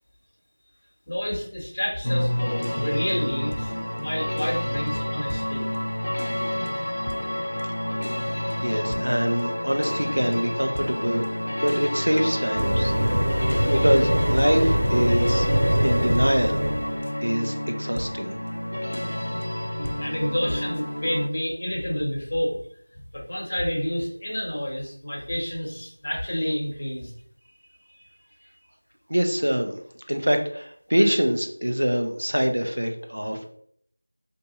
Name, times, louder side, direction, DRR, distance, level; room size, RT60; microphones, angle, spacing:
voice 1, 1.1-3.7 4.0-5.7 20.0-22.6 23.1-27.1, equal, 35° left, -2 dB, 1.0 m, -29 dB
sound 1, 2.0-21.3, left 1 dB, 60° left, 0.4 m, -29 dB
voice 2, 8.6-11.3 11.6-15.5 15.8-16.6 17.2-18.4 29.1-29.8 30.1-33.5, equal, 75° right, 5 dB, 0.6 m, -24 dB
sound 2, 12.6-17.0, right 1 dB, 25° right, 0.4 m, -23 dB
2.7 x 2.4 x 4.0 m, 0.64 s
figure-of-eight pair, 175°, 0 cm